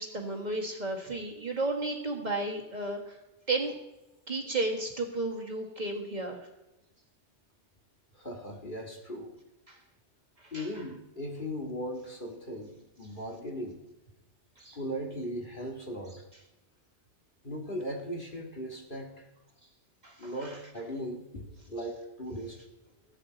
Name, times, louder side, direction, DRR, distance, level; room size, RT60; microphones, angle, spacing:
voice 1, 0.0-3.2 3.5-3.7 4.3-6.4 9.7-9.8 10.4-10.8 14.6-14.8 20.0-20.6, right 2 dB, 40° right, 0 dB, 1.9 m, -33 dB
voice 2, 8.1-9.3 10.5-13.8 14.7-16.2 17.4-19.3 20.2-22.6, equal, 45° left, 0 dB, 2.2 m, -38 dB
18.5 x 9.0 x 4.0 m, 0.96 s
omnidirectional pair, 1.2 m